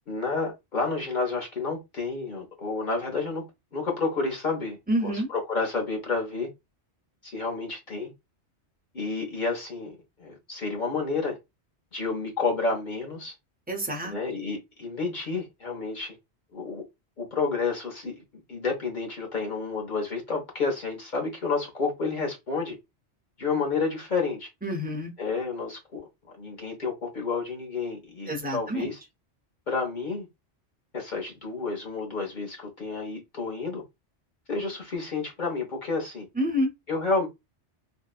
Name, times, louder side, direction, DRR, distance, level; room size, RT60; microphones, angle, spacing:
voice 1, 0.1-3.4 3.7-6.5 7.2-8.1 8.9-11.4 11.9-13.3 14.0-16.2 16.5-16.8 17.2-18.2 18.5-22.8 23.4-24.5 25.2-29.0 29.7-30.3 30.9-33.8 34.5-36.3 36.9-37.3, left 4 dB, 45° left, 0.9 m, -30 dB
voice 2, 4.9-5.3 13.7-14.1 24.6-25.1 28.3-28.9 36.4-36.7, equal, 10° right, 0.4 m, -28 dB
2.7 x 2.1 x 2.3 m
omnidirectional pair, 1.2 m